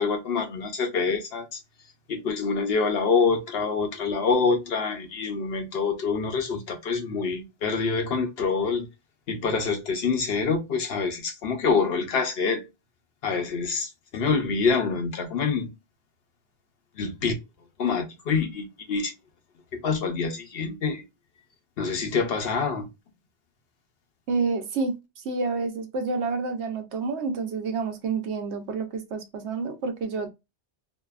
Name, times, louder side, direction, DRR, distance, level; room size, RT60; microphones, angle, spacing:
voice 1, 0.0-1.6 2.1-8.9 9.3-12.6 13.2-15.7 17.0-17.3 17.8-19.1 19.7-21.0 21.8-22.9, left 5 dB, 65° left, 0.8 m, -26 dB
voice 2, 24.3-25.0 25.2-30.3, right 4 dB, 80° right, 1.0 m, -29 dB
2.7 x 2.3 x 2.3 m
omnidirectional pair, 1.1 m